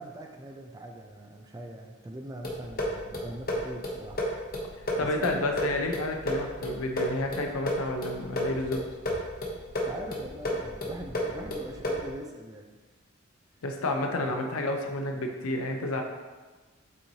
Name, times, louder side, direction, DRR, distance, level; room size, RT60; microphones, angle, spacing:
voice 1, 0.0-4.2 4.9-5.6 9.7-12.7 14.3-14.4, right 1 dB, 15° right, 2 dB, 0.3 m, -41 dB
sound 1, 2.4-12.2, equal, 45° left, 0.9 m, -33 dB
voice 2, 5.0-8.8 13.6-16.0, left 2 dB, 85° left, 3 dB, 0.5 m, -30 dB
6.3 x 3.0 x 2.7 m, 1.3 s
head